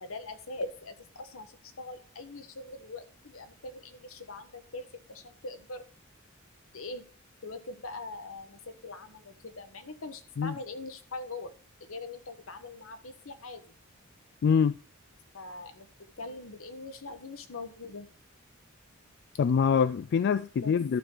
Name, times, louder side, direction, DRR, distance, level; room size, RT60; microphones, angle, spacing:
voice 1, 0.0-5.8 6.7-7.0 7.4-11.5 11.8-13.8 15.3-15.9 16.2-18.1 20.6-20.8, left 2 dB, 80° left, 1.2 m, -42 dB
voice 2, 14.4-14.8 19.4-21.0, left 6 dB, 55° left, 0.3 m, -24 dB
12.0 x 6.2 x 3.9 m
head